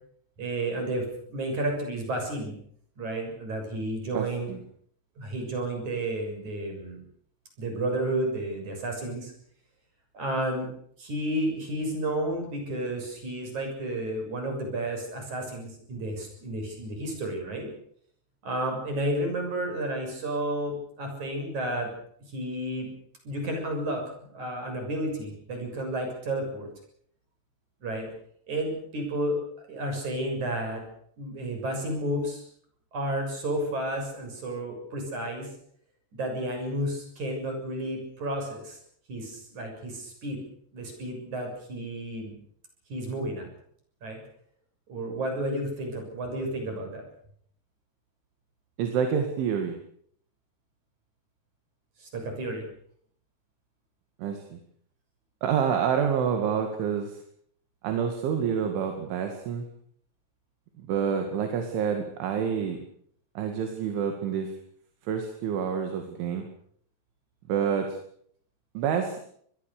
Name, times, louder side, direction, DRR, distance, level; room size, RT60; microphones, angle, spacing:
voice 1, 0.4-2.6 3.0-4.5 5.2-7.0 7.6-9.3 10.1-10.7 11.0-17.7 18.4-21.9 22.3-22.9 23.2-26.7 27.8-28.1 28.5-29.4 29.7-30.8 31.2-32.4 32.9-35.5 36.1-38.8 39.1-40.4 40.7-42.3 42.9-43.4 44.0-44.2 44.9-47.0 52.0-52.6, right 1 dB, 40° right, 3 dB, 8.0 m, -31 dB
voice 2, 4.1-4.6 48.8-49.7 54.2-54.6 55.4-57.2 57.8-59.7 60.8-62.8 63.4-64.5 65.0-66.5 67.5-68.0 68.8-69.2, right 7 dB, 80° right, 5 dB, 4.6 m, -28 dB
25.5 x 21.0 x 6.8 m, 0.64 s
omnidirectional pair, 5.5 m